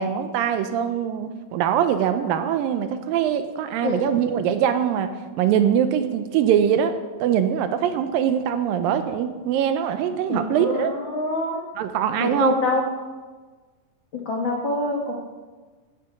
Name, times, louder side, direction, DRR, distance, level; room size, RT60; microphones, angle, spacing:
voice 1, 0.0-7.0 7.2-10.9 11.8-12.5, right 9 dB, 80° right, 9 dB, 2.2 m, -22 dB
voice 2, 10.3-11.6 12.2-12.9 14.2-15.1, left 2 dB, 90° left, -1 dB, 1.0 m, -25 dB
16.5 x 6.5 x 5.9 m, 1.3 s
omnidirectional pair, 4.4 m